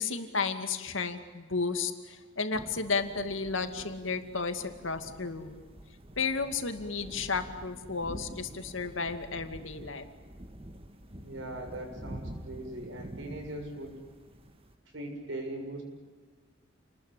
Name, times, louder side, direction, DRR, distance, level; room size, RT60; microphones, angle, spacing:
voice 1, 0.0-5.6 6.2-10.0, left 4 dB, 80° left, 7 dB, 2.3 m, -33 dB
sound 1, 2.5-14.7, right 1 dB, 30° right, 1.6 m, -47 dB
voice 2, 11.2-14.0 14.9-15.8, right 1 dB, 75° right, 3 dB, 7.0 m, -40 dB
29.5 x 20.5 x 8.4 m, 1.4 s
head